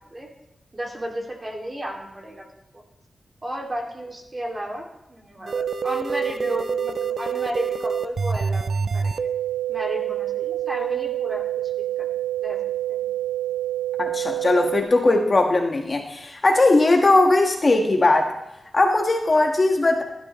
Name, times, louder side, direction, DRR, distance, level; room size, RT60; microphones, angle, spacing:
voice 1, 0.7-2.5 2.7-2.8 3.4-9.3 9.7-11.4 12.0-12.1 12.4-12.6 12.9-13.1, right 1 dB, 25° right, 1 dB, 2.5 m, -33 dB
sound 1, 5.5-14.8, right 8 dB, 60° right, 0.6 m, -26 dB
voice 2, 14.0-18.3 18.7-20.0, left 2 dB, 35° left, 2 dB, 1.6 m, -19 dB
16.5 x 12.0 x 3.1 m, 0.94 s
wide cardioid pair, 110°, 0 cm